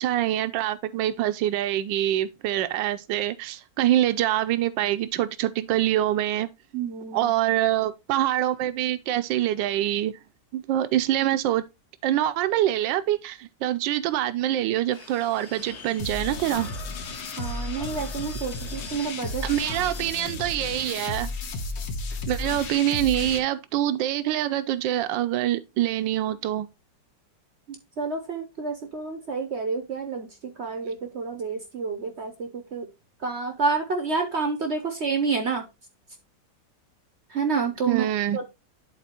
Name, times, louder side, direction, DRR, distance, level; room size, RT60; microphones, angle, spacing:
voice 1, 0.0-6.5 7.1-10.2 10.5-11.6 12.0-16.7 19.4-21.3 22.3-26.7 37.9-38.4, right 13 dB, 85° right, 1.3 m, -25 dB
voice 2, 6.7-7.3 17.4-19.8 27.7-32.9 33.2-35.7 37.3-38.4, right 4 dB, 55° right, 0.8 m, -29 dB
sound 1, 14.9-20.2, left 3 dB, 45° left, 1.3 m, -44 dB
sound 2, 16.0-23.4, left 3 dB, 80° left, 1.7 m, -33 dB
11.0 x 4.0 x 2.9 m
omnidirectional pair, 2.0 m